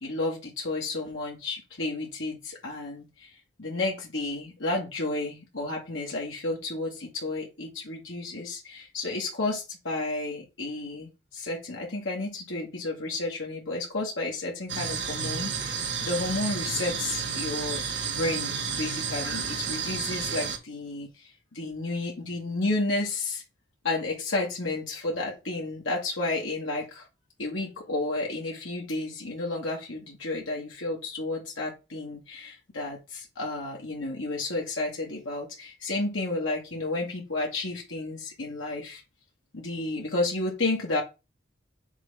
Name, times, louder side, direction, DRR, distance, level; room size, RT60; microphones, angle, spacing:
voice 1, 0.0-17.8 18.1-23.4 23.8-27.1 27.4-39.0 39.5-41.0, left 2 dB, 90° left, 1.8 m, -32 dB
sound 1, 14.7-20.6, right 6 dB, 60° right, 1.6 m, -31 dB
5.9 x 3.4 x 5.4 m
head